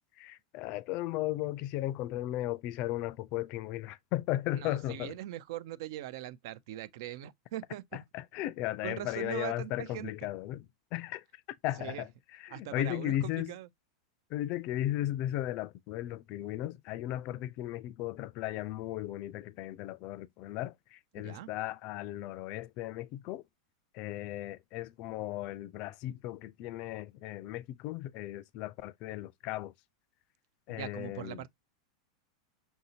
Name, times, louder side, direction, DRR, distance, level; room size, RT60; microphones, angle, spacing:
voice 1, 0.2-5.1 7.9-10.7 10.9-11.2 11.6-13.5 14.3-23.4 23.9-29.7 30.7-31.4, left 14 dB, 50° left, 0.4 m, -36 dB
voice 2, 4.5-8.0 8.8-10.1 11.8-12.0 12.5-13.7 21.2-21.5 30.7-31.5, right 13 dB, 65° right, 0.5 m, -41 dB
5.6 x 2.7 x 2.8 m
hypercardioid pair, 100°, 2 cm